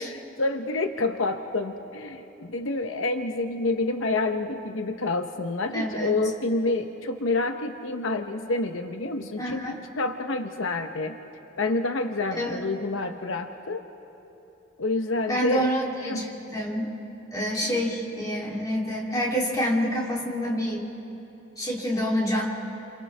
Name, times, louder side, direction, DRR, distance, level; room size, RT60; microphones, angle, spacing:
voice 1, 0.0-11.1 11.6-13.9 14.8-15.7 16.0-16.2 17.6-17.8, left 2 dB, 80° left, 6 dB, 0.8 m, -28 dB
voice 2, 5.7-6.2 9.4-9.8 12.3-12.6 15.3-16.9 17.3-20.8 21.6-22.4, equal, 20° left, -4 dB, 2.9 m, -27 dB
30.0 x 27.5 x 3.3 m, 3.0 s
head